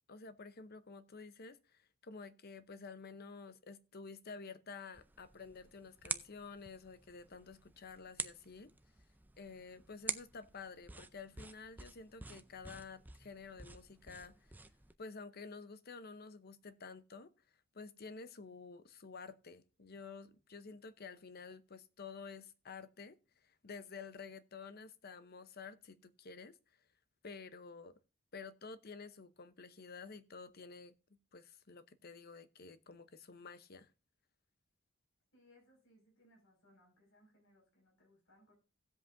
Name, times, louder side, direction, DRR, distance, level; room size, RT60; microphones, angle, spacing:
voice 1, 0.1-8.7 9.4-14.3 15.0-17.3 17.7-26.6 27.2-27.9 28.3-30.9 31.3-33.9, left 4 dB, 50° left, 0.8 m, -51 dB
sound 1, 4.9-14.9, right 3 dB, 10° right, 0.5 m, -48 dB
voice 2, 35.3-38.5, left 1 dB, 70° left, 5.5 m, -67 dB
17.0 x 7.9 x 2.6 m
head